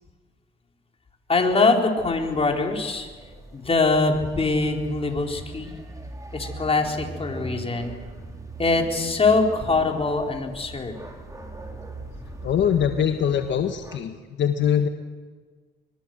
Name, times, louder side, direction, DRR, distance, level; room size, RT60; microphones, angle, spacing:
voice 1, 1.3-3.1 3.5-5.7 6.3-7.9 8.6-10.9, left 3 dB, 30° left, 1 dB, 4.4 m, -23 dB
sound 1, 2.0-14.0, right 2 dB, 15° right, 4.6 m, -40 dB
voice 2, 12.4-14.9, left 8 dB, 70° left, 6 dB, 1.6 m, -23 dB
24.0 x 23.0 x 7.9 m, 1.5 s
cardioid pair, 90°, 20 cm